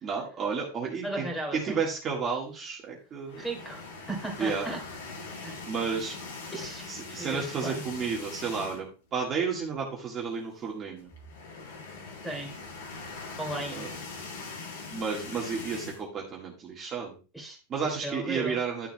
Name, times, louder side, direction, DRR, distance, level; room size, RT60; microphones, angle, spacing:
voice 1, 0.0-3.4 4.4-4.7 5.7-6.2 6.9-11.1 13.7-13.9 14.9-17.2 17.7-18.9, right 5 dB, 25° right, -2 dB, 1.6 m, -32 dB
voice 2, 1.0-1.6 3.4-4.8 5.4-5.5 6.5-7.8 12.2-12.5 13.4-13.8 17.3-17.6 18.0-18.6, right 2 dB, 5° left, 2 dB, 2.3 m, -36 dB
sound 1, 3.2-9.0 9.4-9.6 9.8-9.9 11.0-16.0, left 4 dB, 75° left, 3.3 m, -42 dB
11.0 x 6.9 x 2.2 m, 0.33 s
supercardioid pair, 155°, 0 cm